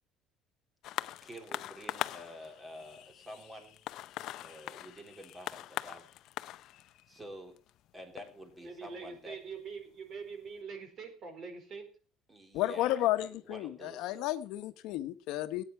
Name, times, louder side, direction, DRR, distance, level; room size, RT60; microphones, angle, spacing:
sound 1, 0.8-9.7 10.5-10.6, left 14 dB, 55° left, 0.6 m, -42 dB
voice 1, 1.2-3.8 4.4-6.1 7.1-7.6 7.9-9.4 12.3-14.2, equal, 10° right, 5 dB, 3.2 m, -49 dB
voice 2, 8.6-11.9, right 5 dB, 40° right, 6 dB, 4.5 m, -44 dB
voice 3, 12.5-15.6, left 14 dB, 75° left, 10 dB, 1.2 m, -32 dB
17.5 x 9.5 x 5.8 m, 0.38 s
cardioid pair, 165°, 0 cm